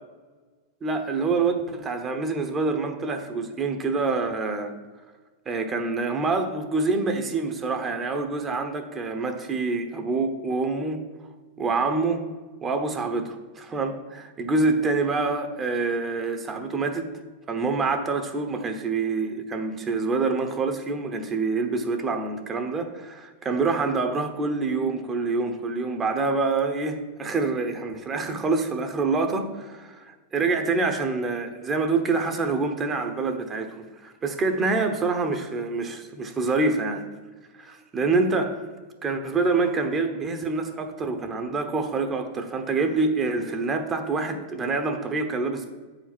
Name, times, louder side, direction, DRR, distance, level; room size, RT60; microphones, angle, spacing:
voice 1, 0.8-4.7 5.5-11.0 11.6-12.2 12.6-17.1 17.5-37.0 37.6-38.6 39.0-45.7, right 3 dB, 25° right, 6 dB, 1.0 m, -26 dB
7.8 x 5.0 x 6.1 m, 1.3 s
hypercardioid pair, 115°, 0 cm